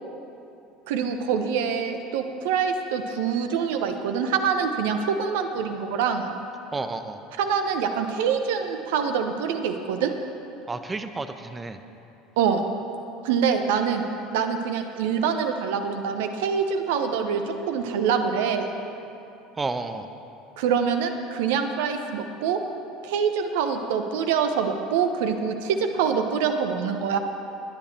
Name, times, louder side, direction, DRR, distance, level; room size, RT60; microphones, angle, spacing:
voice 1, 0.9-6.4 7.4-10.1 12.4-12.7 13.2-14.0 14.3-18.7 20.6-22.6 23.0-27.2, right 6 dB, 65° right, 7 dB, 1.0 m, -25 dB
voice 2, 6.7-7.2 10.7-11.8 19.6-20.1, right 3 dB, 20° right, 9 dB, 1.0 m, -31 dB
20.5 x 10.0 x 4.5 m, 2.8 s
figure-of-eight pair, 70°, 0 cm